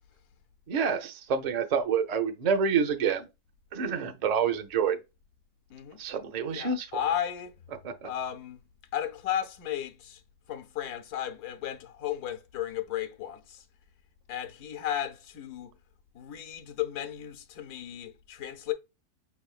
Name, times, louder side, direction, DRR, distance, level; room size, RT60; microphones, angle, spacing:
voice 1, 0.7-3.3 3.7-5.0 6.0-6.9 7.8-8.1, right 6 dB, 50° right, 0.5 m, -27 dB
voice 2, 6.5-7.5 8.0-8.6 8.9-10.2 10.5-13.6 14.3-15.7 16.1-18.7, left 10 dB, 80° left, 1.2 m, -34 dB
5.5 x 3.4 x 2.4 m
omnidirectional pair, 1.6 m